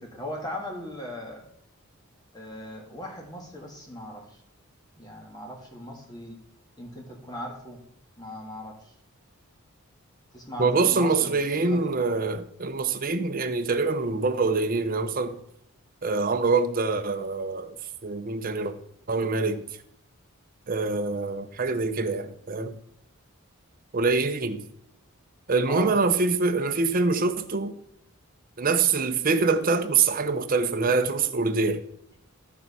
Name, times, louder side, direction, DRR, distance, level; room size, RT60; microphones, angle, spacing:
voice 1, 0.0-1.5 2.3-4.4 5.0-6.4 6.8-7.8 8.2-8.9 10.3-11.9 25.7-25.9, left 1 dB, 20° left, 1.6 m, -39 dB
voice 2, 10.6-15.4 16.0-17.8 18.0-18.7 19.1-19.6 20.7-22.7 23.9-24.6 25.5-27.7 28.6-31.8, right 4 dB, 40° right, 0.7 m, -25 dB
13.5 x 4.6 x 5.5 m
head